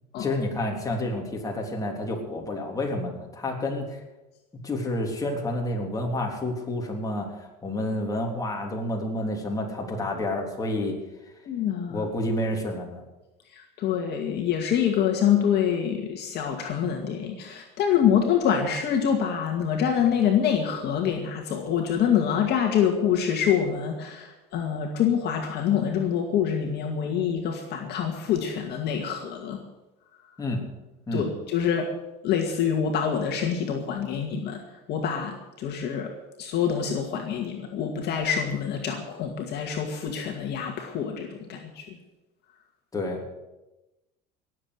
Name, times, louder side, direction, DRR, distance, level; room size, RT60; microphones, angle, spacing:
voice 1, 0.2-4.0 4.6-11.0 11.9-13.0 30.4-30.6 31.1-31.3 42.9-43.3, left 1 dB, 15° left, 0 dB, 3.6 m, -29 dB
voice 2, 11.5-12.1 13.5-29.6 31.1-31.9 32.2-34.6 34.9-36.1 36.4-42.0, left 8 dB, 50° left, 2 dB, 2.2 m, -26 dB
18.5 x 7.8 x 8.4 m, 1.0 s
supercardioid pair, 115°, 21 cm